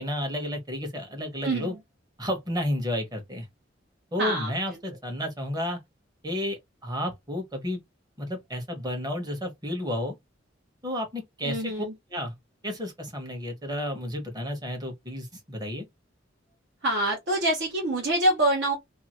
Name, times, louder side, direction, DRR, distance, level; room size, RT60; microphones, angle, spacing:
voice 1, 0.0-1.7 2.2-3.4 4.1-5.8 6.2-7.8 8.2-10.1 10.8-11.6 12.1-12.3 12.6-15.9, left 1 dB, 20° right, 1.1 m, -31 dB
voice 2, 1.4-1.8 4.2-4.5 11.4-11.9 16.8-18.8, right 1 dB, 65° right, 1.1 m, -25 dB
2.7 x 2.3 x 3.0 m
head